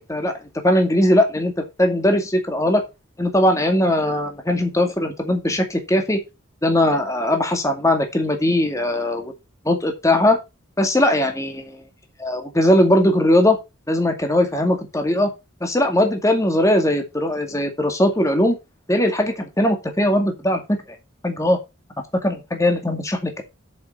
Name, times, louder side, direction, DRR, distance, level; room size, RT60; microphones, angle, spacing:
voice 1, 0.6-2.8 3.2-6.2 6.6-9.3 9.7-10.4 10.8-11.8 12.2-13.6 13.9-15.3 15.6-18.5 18.9-20.6 21.2-21.6 22.2-23.4, left 1 dB, 15° left, 5 dB, 2.2 m, -19 dB
8.8 x 6.8 x 4.4 m, 0.24 s
head